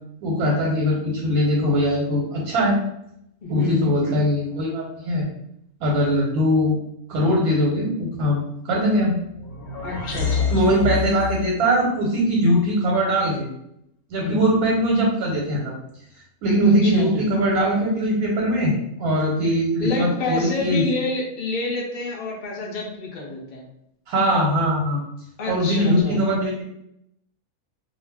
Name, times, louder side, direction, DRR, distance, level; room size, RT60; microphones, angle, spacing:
voice 1, 0.2-2.8 3.5-5.3 5.8-6.7 7.1-9.2 10.5-13.5 14.1-15.7 16.4-20.8 24.1-25.0 25.5-26.6, equal, 85° right, -2 dB, 1.1 m, -21 dB
voice 2, 3.4-4.2 9.8-11.0 14.2-14.4 16.6-17.2 19.8-23.6 25.4-26.2, left 3 dB, 70° left, -2 dB, 0.4 m, -28 dB
sound 1, 9.2-11.5, left 7 dB, 90° left, 1.1 m, -27 dB
2.4 x 2.2 x 3.3 m, 0.79 s
omnidirectional pair, 1.5 m